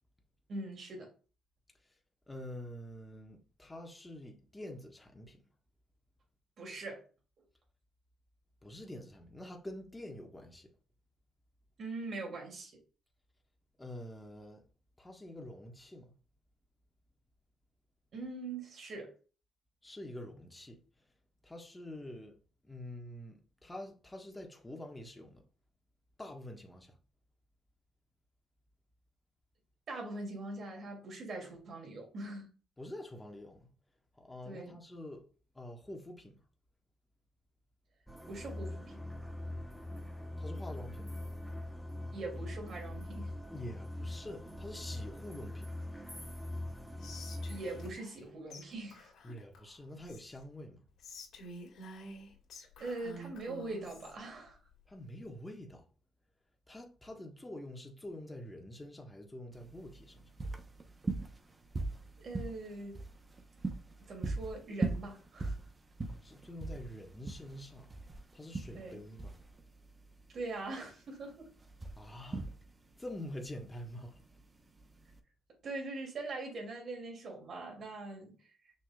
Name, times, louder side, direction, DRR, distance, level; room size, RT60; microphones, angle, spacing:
voice 1, 0.5-1.1 6.6-7.0 11.8-12.7 18.1-19.1 29.9-32.5 34.4-34.8 38.3-39.0 42.1-43.3 47.5-49.1 52.8-54.6 62.2-63.0 64.0-65.6 68.7-69.0 70.3-71.5 75.6-78.5, right 2 dB, 55° right, 2.9 m, -42 dB
voice 2, 2.3-5.4 8.6-10.7 13.8-14.6 15.0-16.1 19.8-20.8 21.4-22.4 22.6-25.4 26.2-27.0 32.8-33.7 34.2-35.2 35.5-36.4 40.4-41.1 43.5-45.7 49.2-50.8 54.9-55.8 56.7-60.1 66.2-67.9 68.3-69.3 72.0-72.5 73.0-74.2, left 1 dB, 15° left, 1.6 m, -46 dB
sound 1, 38.1-47.9, left 1 dB, 5° right, 1.1 m, -42 dB
Whispering, 47.0-48.2 48.5-48.6 48.9-50.4 51.0-54.1, equal, 75° left, 2.7 m, -50 dB
sound 2, 59.5-75.2, right 3 dB, 25° right, 1.0 m, -41 dB
6.2 x 6.2 x 2.5 m
cardioid pair, 90°, 0 cm